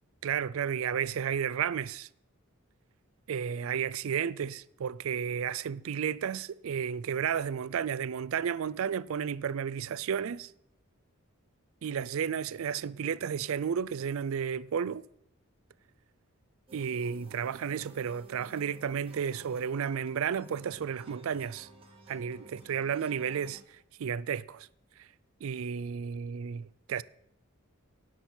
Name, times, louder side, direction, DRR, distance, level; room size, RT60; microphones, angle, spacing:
voice 1, 0.2-2.1 3.3-10.5 11.8-15.0 16.7-21.7 22.1-23.6 24.0-24.7 25.4-27.0, right 7 dB, 70° right, 0.4 m, -32 dB
sound 1, 16.7-23.6, right 2 dB, 25° right, 1.4 m, -53 dB
18.0 x 7.4 x 4.4 m
head